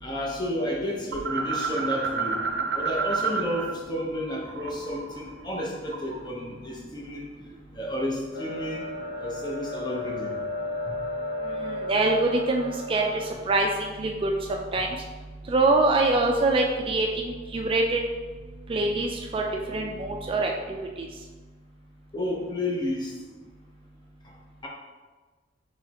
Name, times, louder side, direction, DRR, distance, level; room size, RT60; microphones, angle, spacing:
voice 1, 0.0-2.4 2.7-7.3 7.7-8.9 9.2-10.4 10.9-11.0 22.1-23.1 24.2-24.3 24.6-24.7, left 1 dB, 25° left, -2 dB, 0.7 m, -31 dB
sound 1, 1.1-3.7 4.0-6.3, right 5 dB, 80° right, 0.5 m, -30 dB
sound 2, 8.3-13.3, left 2 dB, 75° left, 0.6 m, -34 dB
voice 2, 11.5-14.9 15.5-18.0 18.7-21.1, right 2 dB, 30° right, 1 dB, 0.3 m, -25 dB
4.9 x 3.2 x 2.8 m, 1.3 s
head